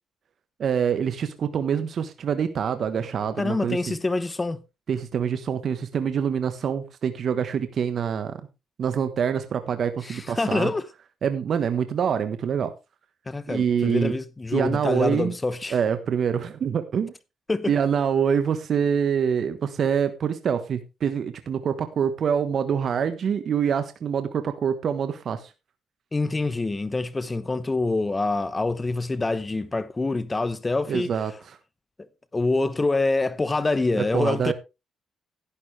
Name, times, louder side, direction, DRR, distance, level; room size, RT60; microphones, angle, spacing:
voice 1, 0.6-3.9 4.9-8.4 8.8-10.7 11.2-12.7 13.5-14.1 14.5-15.3 15.7-17.1 17.7-25.5 30.9-31.6 34.0-34.5, right 7 dB, 55° right, 1.3 m, -25 dB
voice 2, 3.4-4.6 10.0-10.8 13.3-15.8 17.5-17.7 26.1-31.1 32.3-34.5, left 3 dB, 20° left, 0.9 m, -26 dB
11.5 x 11.0 x 3.3 m
cardioid pair, 90°, 0 cm